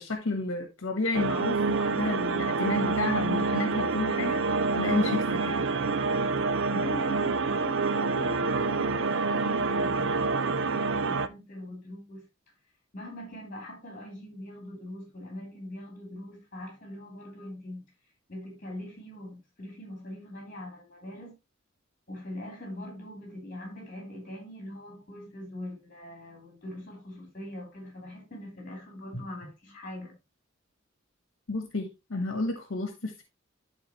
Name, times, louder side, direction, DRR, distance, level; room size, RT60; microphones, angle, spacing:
voice 1, 0.0-4.4 4.8-5.6 31.5-33.2, left 3 dB, 80° left, 1.2 m, -31 dB
sound 1, 1.1-11.3, right 4 dB, 70° right, 0.6 m, -27 dB
voice 2, 6.7-12.3 12.9-17.8 18.3-21.3 22.1-30.1, left 1 dB, 40° left, 3.4 m, -42 dB
11.5 x 4.0 x 3.0 m
head